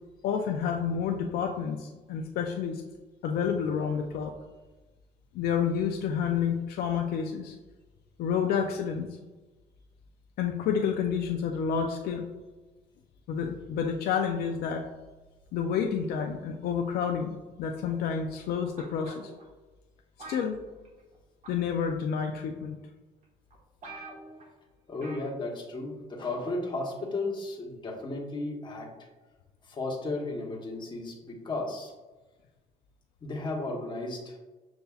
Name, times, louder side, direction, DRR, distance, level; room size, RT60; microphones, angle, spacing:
voice 1, 0.2-2.8 3.2-4.3 5.3-7.6 8.2-9.1 10.4-12.2 13.3-14.9 15.5-19.3 20.3-20.6 21.5-22.8, left 7 dB, 70° left, 3 dB, 0.4 m, -29 dB
sound 1, 18.8-19.4 20.2-21.2 21.4-21.7 22.6-22.7 23.2-23.3 23.5-23.6 23.8-24.5 25.0-25.3 25.6-25.7, right 3 dB, 45° right, 1.3 m, -45 dB
voice 2, 24.9-28.9 29.6-31.9 33.2-34.4, left 2 dB, 30° left, -1 dB, 1.1 m, -34 dB
6.8 x 2.6 x 2.3 m, 1.2 s
cardioid pair, 110°, 17 cm